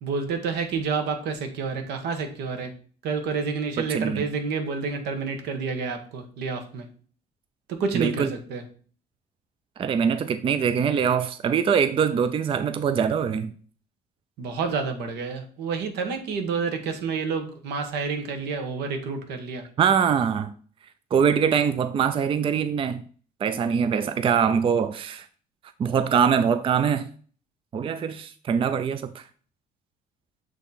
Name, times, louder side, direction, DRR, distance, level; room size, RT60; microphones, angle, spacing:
voice 1, 0.0-2.7 3.0-6.9 7.7-8.6 14.4-19.7, right 5 dB, 80° right, 1.3 m, -29 dB
voice 2, 3.8-4.2 7.9-8.3 9.8-13.5 19.8-20.5 21.1-23.0 23.4-25.3 25.8-27.1 27.7-29.3, right 7 dB, 30° right, 0.4 m, -23 dB
8.0 x 3.0 x 4.0 m
cardioid pair, 110°, 17 cm